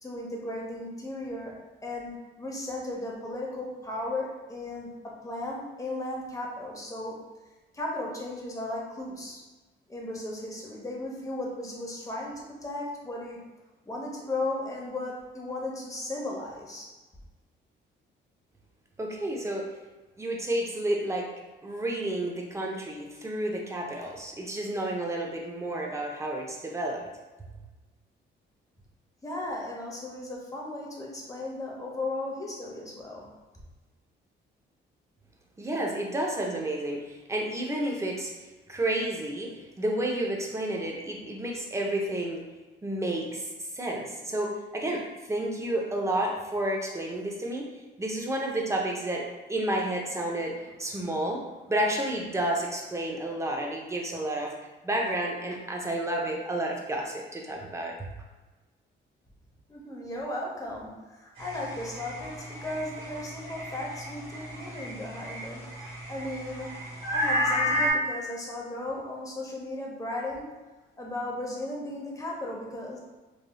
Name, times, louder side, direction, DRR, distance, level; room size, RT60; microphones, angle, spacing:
voice 1, 0.0-7.2 7.7-9.4 9.9-13.4 13.9-16.9 29.2-33.3 59.7-65.6 66.1-70.5 71.0-73.0, left 2 dB, 15° left, -2 dB, 0.8 m, -36 dB
voice 2, 19.0-19.7 20.2-21.3 21.6-27.0 35.6-38.3 38.7-42.4 42.8-47.7 48.0-54.5 54.8-58.0, right 1 dB, 15° right, 0 dB, 0.6 m, -31 dB
sound 1, 61.4-67.9, equal, 80° right, 1.4 m, -32 dB
3.2 x 2.6 x 2.2 m, 1.2 s
cardioid pair, 90°, 20 cm